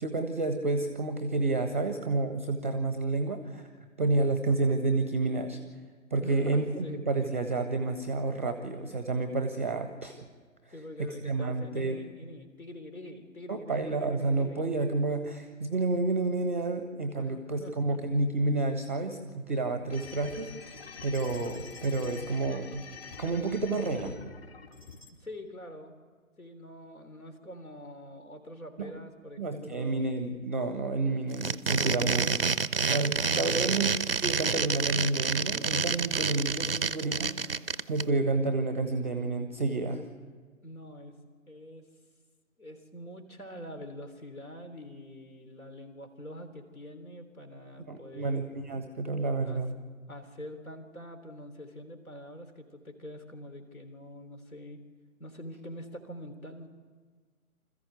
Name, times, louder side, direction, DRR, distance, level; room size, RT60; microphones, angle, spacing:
voice 1, 0.0-3.7 4.0-5.6 6.1-10.3 11.0-12.0 13.5-22.8 23.2-24.2 28.8-28.9 29.4-32.3 32.8-33.9 34.2-40.1 47.9-49.8, right 3 dB, 10° right, 7 dB, 0.7 m, -30 dB
voice 2, 6.2-7.0 10.7-14.7 17.2-17.3 17.6-18.0 25.2-25.9 26.4-30.1 32.0-32.3 33.5-33.9 40.6-41.2 41.5-41.9 42.6-48.4 49.4-49.6 50.1-54.8 55.2-56.7, left 1 dB, 75° left, 8 dB, 3.6 m, -45 dB
sound 1, 19.9-25.1, left 5 dB, 45° left, 2.9 m, -45 dB
sound 2, 31.3-38.0, right 5 dB, 45° right, 0.5 m, -28 dB
26.0 x 14.5 x 8.1 m, 1.5 s
figure-of-eight pair, 150°, 43 cm